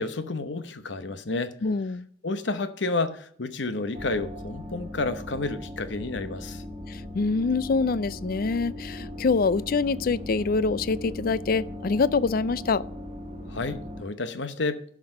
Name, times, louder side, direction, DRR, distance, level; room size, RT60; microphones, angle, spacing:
voice 1, 0.0-1.5 2.2-6.6 13.5-14.8, left 3 dB, 70° left, 0.9 m, -30 dB
voice 2, 1.6-2.1 6.9-12.8, left 4 dB, 50° left, 0.4 m, -25 dB
sound 1, 3.9-14.0, left 1 dB, 30° right, 1.4 m, -38 dB
11.5 x 6.0 x 6.4 m
head